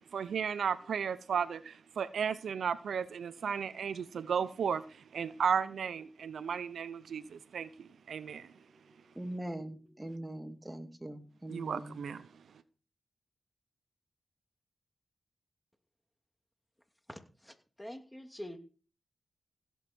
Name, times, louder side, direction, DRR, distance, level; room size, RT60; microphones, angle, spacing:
voice 1, 0.0-4.8 5.1-8.5 11.5-12.2, right 7 dB, 85° right, 0.7 m, -34 dB
voice 2, 9.1-12.0, right 1 dB, 15° right, 2.3 m, -42 dB
voice 3, 17.1-18.6, equal, 10° left, 2.7 m, -46 dB
16.5 x 8.2 x 4.5 m
cardioid pair, 45°, 0 cm